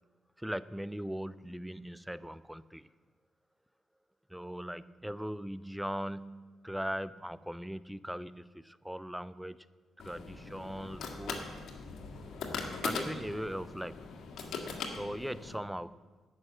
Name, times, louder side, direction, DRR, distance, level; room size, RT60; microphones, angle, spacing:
voice 1, 0.4-2.9 4.3-9.6 10.0-11.4 12.8-14.0 15.0-15.9, equal, 5° right, 16 dB, 0.4 m, -39 dB
sound 1, 10.0-15.6, left 4 dB, 70° left, 1.9 m, -40 dB
11.0 x 6.6 x 8.6 m, 1.4 s
cardioid pair, 90°, 0 cm